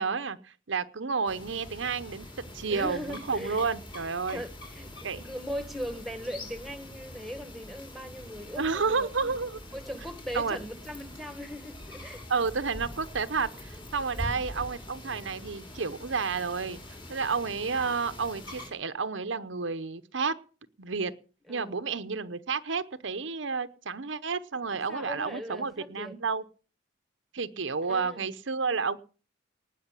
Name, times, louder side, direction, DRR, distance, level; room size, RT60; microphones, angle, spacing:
voice 1, 0.0-2.3 2.5-4.4 5.0-5.2 8.6-9.6 10.3-10.6 12.3-16.8 17.1-20.3 20.8-21.1 21.5-26.4 27.3-29.0, right 5 dB, 70° right, 0.9 m, -31 dB
sound 1, 1.3-18.7, left 1 dB, 25° left, 3.9 m, -44 dB
voice 2, 2.7-3.6 4.3-9.3 9.7-12.2 14.1-14.4 21.5-21.9 24.9-26.2 27.9-28.3, equal, ahead, 1.8 m, -39 dB
19.5 x 6.5 x 8.2 m
head